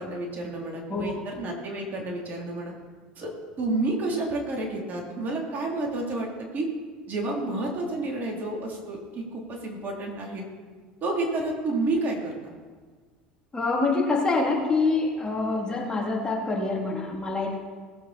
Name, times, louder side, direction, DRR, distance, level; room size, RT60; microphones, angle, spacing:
voice 1, 0.0-2.7 3.2-3.3 3.6-6.3 6.5-6.7 7.1-10.4 11.0-12.5, right 2 dB, 40° right, -1 dB, 3.3 m, -30 dB
voice 2, 13.5-17.6, left 3 dB, 20° left, -2 dB, 2.9 m, -26 dB
18.0 x 8.2 x 4.3 m, 1.5 s
hypercardioid pair, 75°, 5 cm